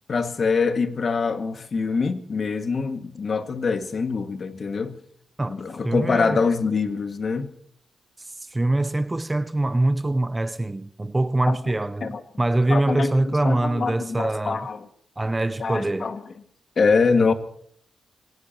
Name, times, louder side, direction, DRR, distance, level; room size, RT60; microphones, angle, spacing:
voice 1, 0.1-5.0 5.5-7.5 11.5-11.6 12.0-12.2 12.7-14.8 15.6-16.2 16.8-17.3, left 4 dB, 50° left, 1.8 m, -24 dB
voice 2, 5.4-6.4 8.2-14.7 15.2-16.2, right 2 dB, 15° right, 0.6 m, -24 dB
26.5 x 18.0 x 2.9 m
cardioid pair, 100°, 0 cm